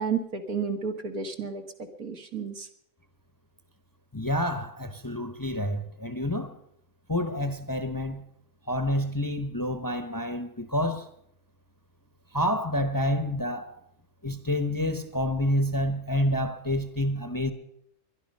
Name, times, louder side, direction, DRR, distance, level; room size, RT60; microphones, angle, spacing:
voice 1, 0.0-1.6 2.0-2.7, right 6 dB, 80° right, 2.3 m, -31 dB
voice 2, 4.1-6.5 7.1-8.2 8.7-11.1 12.3-13.7 14.2-17.5, left 1 dB, 15° left, 0.9 m, -28 dB
21.5 x 12.0 x 5.5 m
omnidirectional pair, 1.5 m